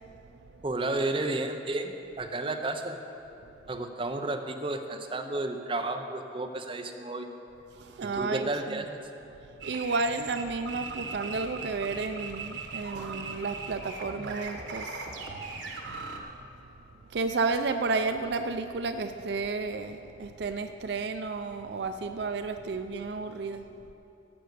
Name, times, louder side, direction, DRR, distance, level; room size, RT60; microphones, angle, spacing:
voice 1, 0.6-3.0 3.7-7.3 8.0-9.0, right 2 dB, 30° right, 5 dB, 0.6 m, -32 dB
voice 2, 7.8-8.8 9.6-15.0 17.1-23.6, right 3 dB, 65° right, 8 dB, 0.4 m, -32 dB
sound 1, 9.6-16.2, right 4 dB, 90° right, 1.2 m, -39 dB
11.0 x 7.9 x 6.7 m, 2.9 s
head